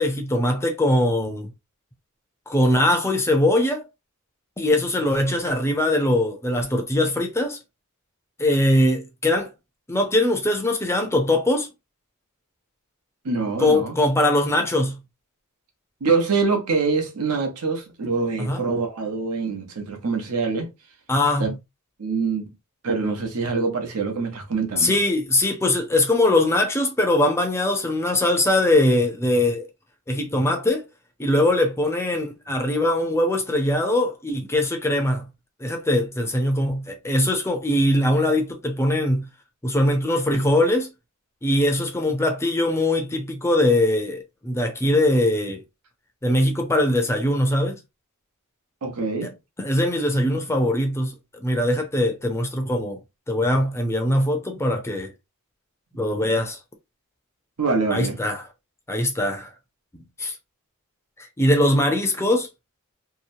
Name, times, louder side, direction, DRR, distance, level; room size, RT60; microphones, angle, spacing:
voice 1, 0.0-1.5 2.5-3.9 4.6-7.6 8.4-9.5 9.9-11.7 13.6-15.0 18.4-18.6 21.1-21.6 24.8-29.7 30.1-30.8 31.2-35.3 35.6-39.3 39.6-40.9 41.4-45.6 46.2-47.8 49.6-53.0 53.3-55.1 55.9-56.6 57.9-58.4 58.9-59.5 59.9-60.3 61.4-62.5, left 1 dB, 10° left, 0.5 m, -21 dB
voice 2, 13.2-14.0 16.0-20.7 21.4-21.5 22.0-22.5 22.8-25.0 48.8-49.3 57.6-58.2, right 4 dB, 85° right, 0.8 m, -24 dB
2.8 x 2.0 x 2.5 m
head